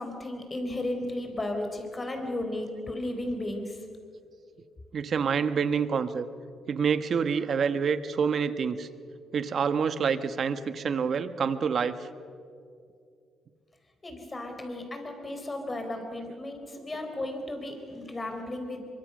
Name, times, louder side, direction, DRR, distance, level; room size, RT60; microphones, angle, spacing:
voice 1, 0.0-3.9 14.0-18.8, left 1 dB, 25° left, 4 dB, 4.4 m, -34 dB
voice 2, 4.9-6.3 6.7-8.9 9.3-12.0, right 6 dB, 55° right, 12 dB, 1.2 m, -27 dB
23.5 x 23.5 x 6.6 m, 2.4 s
cardioid pair, 90°, 0 cm